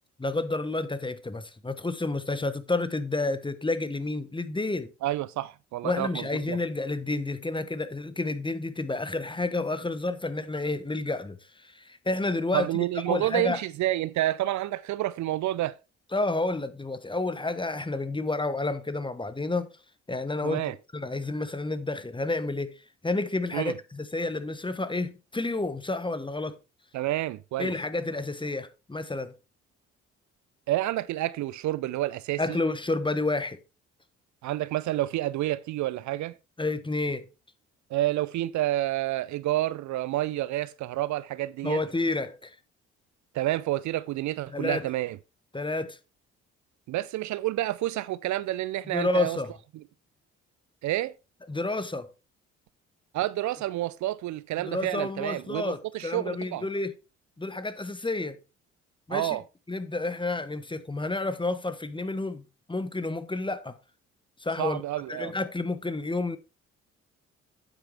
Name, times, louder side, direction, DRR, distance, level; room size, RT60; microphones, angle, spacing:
voice 1, 0.2-4.9 5.8-13.6 16.1-19.7 20.1-20.6 20.9-26.6 27.6-29.3 32.4-33.6 36.6-37.3 41.6-42.6 44.5-44.9 45.5-46.0 48.9-49.5 51.5-52.1 54.6-56.9 57.4-58.4 59.1-59.4 59.7-63.8 64.4-64.8 65.1-66.4, left 2 dB, 15° left, 1.2 m, -30 dB
voice 2, 5.0-6.6 12.5-15.8 20.4-20.7 23.5-23.7 26.9-27.7 30.7-32.6 34.4-36.4 37.9-41.8 43.3-45.2 46.9-49.4 50.8-51.1 53.1-56.7 59.1-59.4 64.6-65.3, right 15 dB, 60° right, 0.5 m, -29 dB
9.1 x 7.9 x 3.4 m
hypercardioid pair, 50°, 34 cm